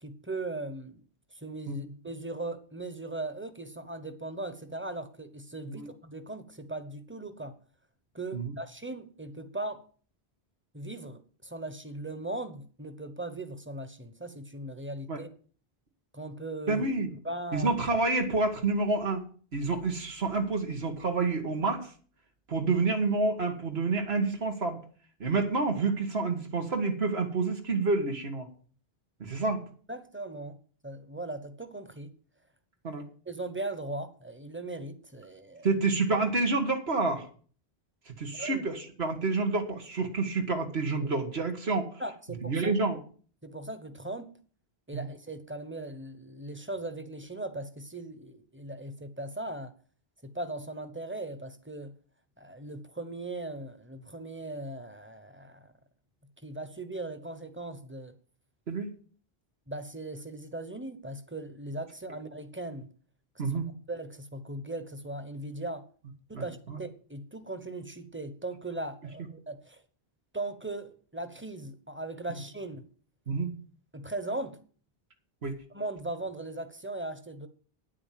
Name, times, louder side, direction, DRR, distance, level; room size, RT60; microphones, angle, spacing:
voice 1, 0.0-1.0 1.3-7.6 8.1-9.8 10.7-15.3 16.1-16.8 17.2-17.7 29.9-32.1 33.3-35.7 38.3-38.6 42.0-42.7 43.4-44.3 44.9-49.7 50.2-51.9 52.4-55.7 56.4-58.1 59.7-62.9 63.4-63.5 63.9-65.8 66.3-69.8 70.3-72.8 73.9-74.6 75.7-77.5, right 2 dB, 10° right, 1.0 m, -38 dB
voice 2, 16.7-17.1 17.5-19.2 19.5-21.9 22.5-24.8 25.2-28.5 29.2-29.6 32.8-33.0 35.6-37.3 38.1-41.9 42.4-43.0 44.9-45.1 58.7-58.9 63.4-63.7 66.3-66.8 73.3-73.5 75.4-75.6, right 3 dB, 80° right, 2.0 m, -28 dB
9.6 x 8.7 x 7.6 m
omnidirectional pair, 1.0 m